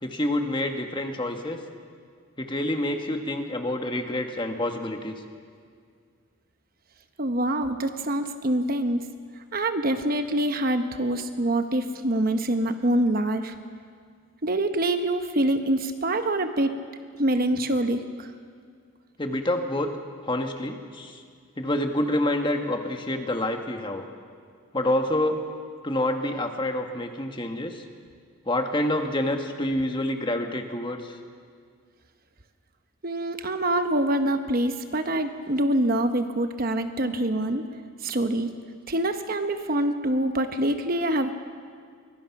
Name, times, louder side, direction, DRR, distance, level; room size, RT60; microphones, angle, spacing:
voice 1, 0.0-1.6 2.4-5.1 19.2-19.9 20.2-21.2 21.6-24.0 24.7-25.4 25.8-27.8 28.5-31.2, left 1 dB, 20° left, 5 dB, 1.4 m, -27 dB
voice 2, 7.2-9.0 9.5-13.5 14.4-16.7 17.2-18.3 33.0-37.7 38.0-38.5 38.9-41.3, right 1 dB, 45° right, 7 dB, 1.0 m, -25 dB
23.5 x 22.0 x 5.9 m, 2.1 s
head